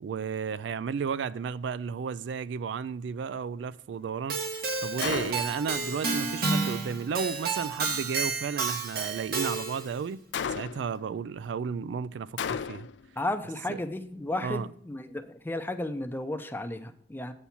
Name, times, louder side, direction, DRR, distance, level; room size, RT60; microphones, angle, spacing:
voice 1, 0.0-10.2 10.5-12.9 13.7-13.8 14.4-14.7, right 6 dB, 75° right, 0.3 m, -33 dB
Keyboard (musical), 4.3-10.0, right 4 dB, 55° right, 1.1 m, -31 dB
Gunshot gunfire, 5.0-5.7 10.3-11.0 12.4-13.1, left 7 dB, 75° left, 0.4 m, -33 dB
voice 2, 13.2-17.3, left 1 dB, 10° left, 0.5 m, -33 dB
8.2 x 4.4 x 7.0 m
head